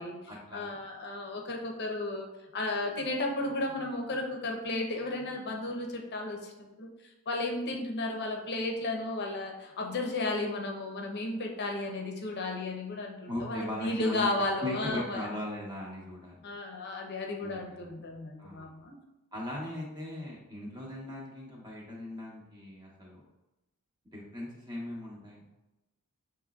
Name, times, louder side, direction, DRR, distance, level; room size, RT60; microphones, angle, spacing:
voice 1, 0.0-0.8 13.3-16.4 17.4-18.0 18.4-18.8 19.3-23.2 24.1-25.4, left 1 dB, 20° right, -3 dB, 1.0 m, -39 dB
voice 2, 0.5-6.9 7.3-15.3 16.4-18.9, left 2 dB, 50° left, 1 dB, 0.7 m, -34 dB
7.1 x 3.0 x 2.4 m, 0.99 s
head